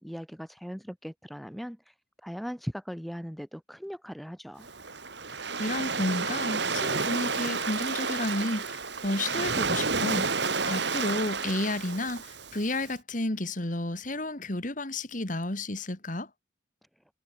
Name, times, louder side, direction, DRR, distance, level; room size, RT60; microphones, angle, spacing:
voice 1, 0.0-1.8 2.2-4.7, equal, ahead, 2.0 m, -39 dB
Waves surf, 4.6-12.8, right 4 dB, 60° right, 2.9 m, -31 dB
voice 2, 5.6-10.3 10.6-16.3, left 2 dB, 40° left, 2.1 m, -31 dB
head